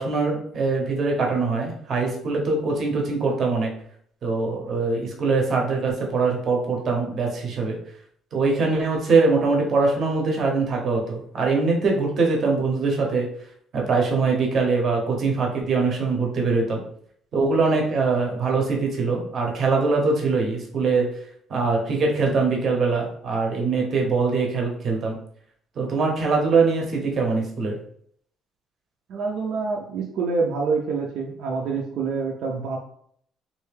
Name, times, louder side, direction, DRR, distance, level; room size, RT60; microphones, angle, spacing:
voice 1, 0.0-3.7 4.2-7.8 8.3-13.3 13.7-16.8 17.3-21.1 21.5-25.2 25.8-27.8, right 4 dB, 40° right, 0 dB, 0.8 m, -22 dB
voice 2, 29.1-32.8, right 4 dB, 65° right, -1 dB, 0.5 m, -26 dB
3.2 x 2.6 x 3.3 m, 0.65 s
cardioid pair, 165°, 0 cm